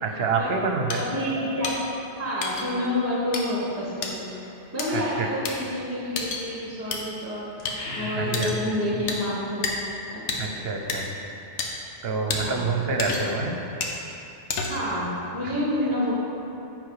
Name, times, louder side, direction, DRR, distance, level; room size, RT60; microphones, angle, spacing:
voice 1, 0.0-1.0 4.9-5.3 8.1-8.5 10.4-11.1 12.0-13.6, right 4 dB, 60° right, 3 dB, 0.9 m, -27 dB
sound 1, 0.9-1.0 1.6-1.8 2.4-2.7 3.3-3.4 4.0-4.1 4.8-4.9 5.4-5.5 6.2-6.4 6.9-7.0 7.6-7.8 8.3-8.6 9.1-9.2 9.6-9.7 10.3-10.4 10.9-11.0 11.6-11.7 12.3-12.4 13.0-13.4 13.8-14.0 14.5-14.9, left 4 dB, 80° left, 1.1 m, -29 dB
voice 2, 1.0-1.7 2.2-4.2 4.7-7.7 8.0-9.7 10.1-10.5 12.3-12.6 14.7-16.1, left 1 dB, 10° right, -7 dB, 1.3 m, -28 dB
sound 2, 7.6-9.2, left 1 dB, 60° left, 1.3 m, -34 dB
9.5 x 3.9 x 4.8 m, 2.8 s
omnidirectional pair, 1.2 m